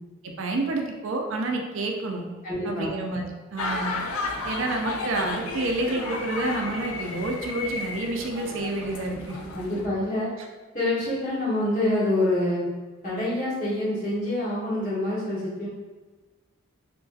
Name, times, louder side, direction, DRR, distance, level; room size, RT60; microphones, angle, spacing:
voice 1, 0.2-2.3 2.6-3.3 3.5-4.0 4.4-9.4, right 2 dB, 65° right, 2 dB, 0.4 m, -29 dB
voice 2, 2.4-2.9 9.5-10.3 10.7-12.6 13.0-15.7, left 1 dB, 40° left, -9 dB, 1.2 m, -26 dB
sound 1, 3.6-9.9, left 3 dB, 85° left, 0.4 m, -33 dB
2.9 x 2.6 x 2.4 m, 1.3 s
head